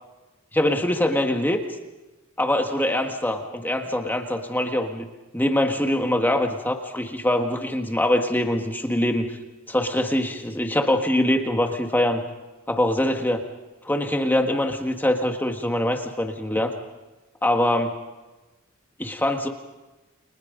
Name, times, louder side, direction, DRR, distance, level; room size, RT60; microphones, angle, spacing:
voice 1, 0.5-1.6 2.4-5.1 5.3-9.4 9.7-12.2 12.7-13.4 13.8-16.7 17.4-17.9 19.0-19.5, left 1 dB, 10° left, 3 dB, 1.6 m, -23 dB
30.0 x 24.5 x 5.3 m, 1.1 s
head